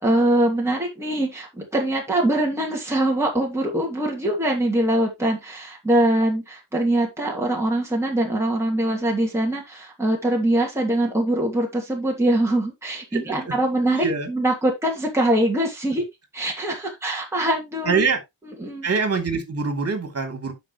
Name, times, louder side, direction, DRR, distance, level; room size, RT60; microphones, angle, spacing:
voice 1, 0.0-16.0 16.3-18.0 18.6-18.8, right 1 dB, 5° right, 2.8 m, -23 dB
voice 2, 13.1-13.5 14.0-14.3 16.0-16.1 17.8-18.2 18.8-20.5, right 4 dB, 30° right, 3.2 m, -24 dB
11.0 x 6.3 x 3.2 m
wide cardioid pair, 175°, 45 cm